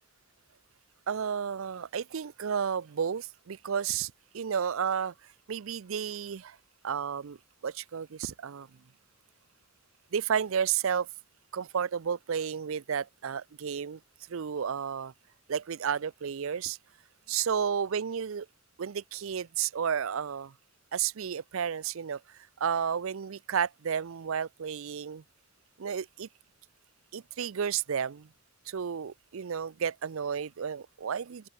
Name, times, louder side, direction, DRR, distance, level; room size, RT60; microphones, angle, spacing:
voice 1, 1.1-5.1 5.5-6.6 6.8-7.4 7.6-8.7 10.1-11.1 11.5-14.0 14.3-15.1 15.5-16.8 17.3-18.5 18.8-20.5 20.9-25.2 25.8-26.3 27.1-28.3 28.7-31.5, right 7 dB, 65° right, 0.5 m, -32 dB
open air
head